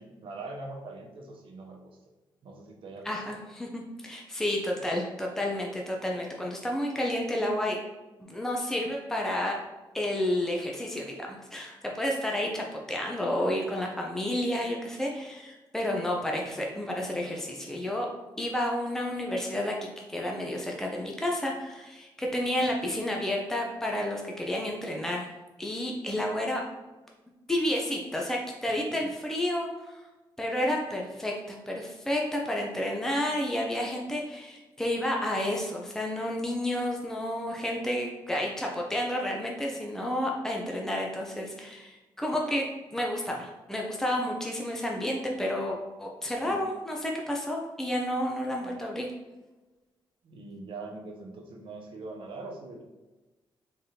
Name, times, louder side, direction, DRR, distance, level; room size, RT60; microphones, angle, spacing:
voice 1, 0.0-2.0 2.4-3.4 22.6-22.7 29.0-29.1 31.1-31.2 46.4-46.6 48.6-49.0 50.2-52.8, right 3 dB, 75° right, 0 dB, 0.8 m, -43 dB
voice 2, 3.0-7.8 8.2-9.6 9.9-18.1 18.4-19.7 20.1-25.3 25.6-26.6 27.5-30.0 30.4-42.6 42.9-49.1, left 1 dB, 5° left, -1 dB, 0.6 m, -31 dB
3.8 x 3.4 x 2.8 m, 1.1 s
cardioid pair, 80°, 9 cm